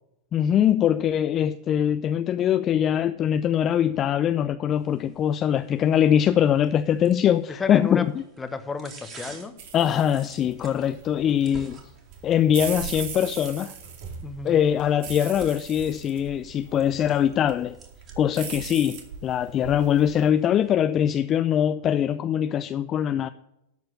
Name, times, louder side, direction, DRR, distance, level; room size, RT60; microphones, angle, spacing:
voice 1, 0.3-8.2 9.7-11.8 12.2-13.7 14.4-17.8 18.2-23.3, left 9 dB, 35° left, 0.5 m, -22 dB
sound 1, 4.8-20.7, right 2 dB, 30° right, 3.5 m, -51 dB
voice 2, 7.6-8.1 8.4-9.5 14.2-14.6, left 4 dB, 15° left, 1.2 m, -32 dB
sound 2, 9.6-20.3, right 6 dB, 60° right, 2.2 m, -40 dB
13.0 x 4.6 x 8.3 m
hypercardioid pair, 105°, 0 cm